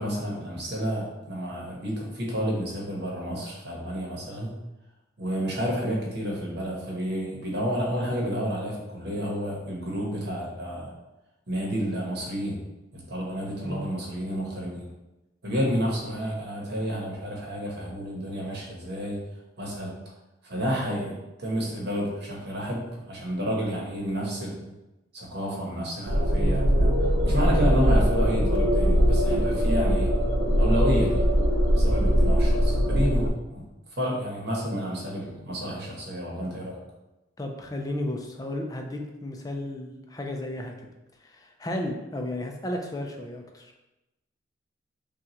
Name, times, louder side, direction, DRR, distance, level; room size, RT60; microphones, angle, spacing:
voice 1, 0.0-4.6 5.2-10.9 11.5-12.6 13.1-14.9 15.4-19.2 19.6-19.9 20.4-21.1 21.4-24.6 25.1-26.9 27.2-30.1 30.6-31.2 31.7-33.6 33.9-36.8, equal, 60° right, -2 dB, 1.1 m, -30 dB
sound 1, 26.1-33.3, equal, 85° right, 0.6 m, -21 dB
voice 2, 37.4-40.9 41.2-43.8, left 1 dB, 20° left, 2 dB, 0.5 m, -33 dB
6.0 x 2.4 x 2.9 m, 0.99 s
head